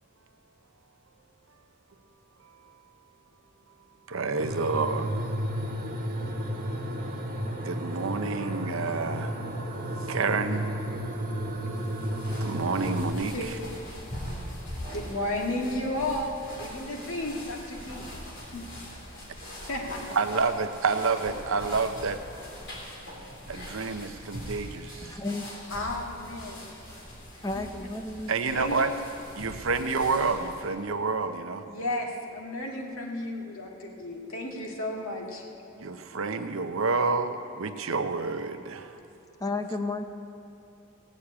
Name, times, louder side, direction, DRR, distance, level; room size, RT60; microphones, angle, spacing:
voice 1, 4.1-5.1 7.6-9.3 10.1-10.7 12.4-13.6 20.1-22.2 23.5-25.2 28.3-28.9 29.4-31.6 35.8-38.9, right 4 dB, 75° right, 8 dB, 0.8 m, -28 dB
sound 1, 4.4-13.1, equal, 45° right, 1.4 m, -32 dB
sound 2, 11.7-30.7, equal, 60° left, 3.4 m, -42 dB
voice 2, 14.9-16.3 16.6-18.1 18.5-18.6 19.7-20.2 25.7-26.6 27.4-27.7 28.5-28.7 31.7-35.4, left 1 dB, 90° left, -1 dB, 2.0 m, -33 dB
voice 3, 25.0-25.4 27.4-28.4 39.4-40.0, left 2 dB, 20° left, 6 dB, 0.6 m, -32 dB
17.0 x 6.5 x 8.6 m, 2.7 s
head